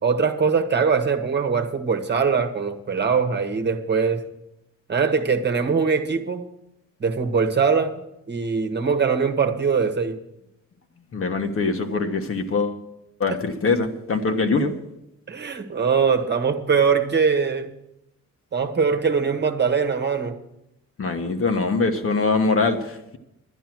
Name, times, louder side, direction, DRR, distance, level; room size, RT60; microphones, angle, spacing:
voice 1, 0.0-4.2 4.9-6.5 7.0-8.0 8.3-10.2 13.3-13.4 15.3-17.7 18.5-20.4, right 5 dB, 35° right, 6 dB, 1.4 m, -22 dB
voice 2, 11.1-12.8 13.2-14.7 21.0-23.2, left 3 dB, 45° left, 6 dB, 1.4 m, -23 dB
11.5 x 10.0 x 6.2 m, 0.85 s
cardioid pair, 90°, 30 cm